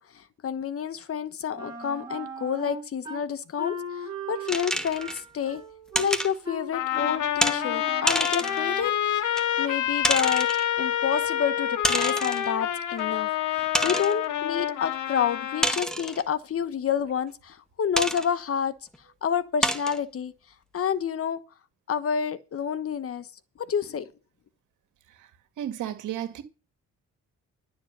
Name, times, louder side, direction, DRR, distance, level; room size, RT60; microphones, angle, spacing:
voice 1, 0.0-5.6 6.0-9.3 9.6-10.5 10.8-18.8 19.2-20.3 20.7-21.4 21.9-23.3 23.6-24.1, left 8 dB, 50° left, 1.2 m, -29 dB
Wind instrument woodwind instrument, 1.6-3.2 3.6-8.9, right 1 dB, 15° right, 7.1 m, -38 dB
sound 1, 4.5-5.2 5.9-6.3 7.4-7.6 8.1-8.6 9.4-9.5 10.0-10.6 11.8-12.5 13.0-13.1 13.7-14.2 15.6-16.2 18.0-18.3 18.9-19.0 19.6-20.0, equal, ahead, 1.7 m, -27 dB
Trumpet, 6.7-15.8, left 10 dB, 80° left, 1.8 m, -28 dB
voice 2, 25.6-26.4, right 11 dB, 80° right, 2.2 m, -32 dB
11.5 x 7.2 x 6.7 m
cardioid pair, 90°, 30 cm